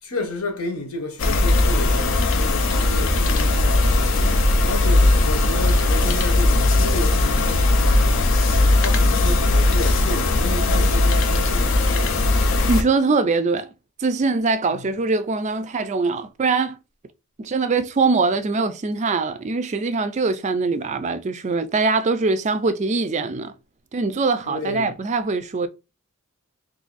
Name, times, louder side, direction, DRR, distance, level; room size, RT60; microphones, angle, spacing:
voice 1, 0.0-4.2 4.6-12.2 14.7-14.9 24.5-25.0, left 2 dB, 80° left, 1.0 m, -32 dB
sound 1, 1.2-12.8, left 2 dB, 60° left, 0.5 m, -18 dB
voice 2, 12.7-13.7 14.0-16.8 17.4-23.5 23.9-25.7, right 3 dB, 30° right, 0.3 m, -22 dB
2.7 x 2.5 x 3.8 m
head